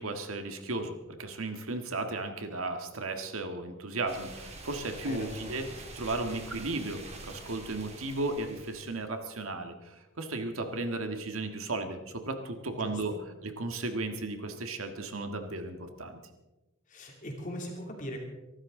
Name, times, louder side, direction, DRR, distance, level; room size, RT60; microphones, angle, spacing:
voice 1, 0.0-5.7 5.9-13.1 13.4-16.2, right 2 dB, 90° right, 6 dB, 1.7 m, -35 dB
sound 1, 4.1-9.0, right 2 dB, 30° right, 2.4 m, -46 dB
voice 2, 5.0-5.6 12.7-13.2 16.9-18.2, equal, 40° left, 1 dB, 2.6 m, -40 dB
24.5 x 12.5 x 3.8 m, 1.1 s
head